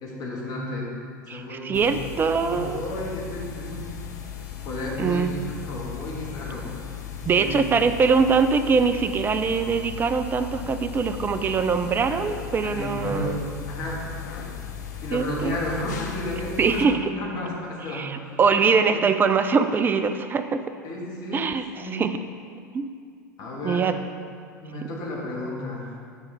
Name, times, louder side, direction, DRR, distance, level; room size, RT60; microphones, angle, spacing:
voice 1, 0.0-0.9 1.2-2.0 2.4-3.9 4.6-6.6 7.3-7.6 12.3-12.4 12.6-14.5 15.0-18.1 18.9-19.0 20.8-21.5 21.8-22.0 23.4-23.9 24.6-25.9, left 1 dB, 40° left, -3 dB, 1.7 m, -32 dB
voice 2, 1.3-2.8 5.0-5.3 7.3-13.4 15.1-15.6 16.6-17.1 17.9-20.6 21.3-22.1 22.7-22.9 23.6-23.9, right 5 dB, 20° right, 9 dB, 0.4 m, -23 dB
sound 1, 1.7-16.9, left 8 dB, 60° left, 0.7 m, -37 dB
8.9 x 5.5 x 3.4 m, 2.2 s
figure-of-eight pair, 85°, 10 cm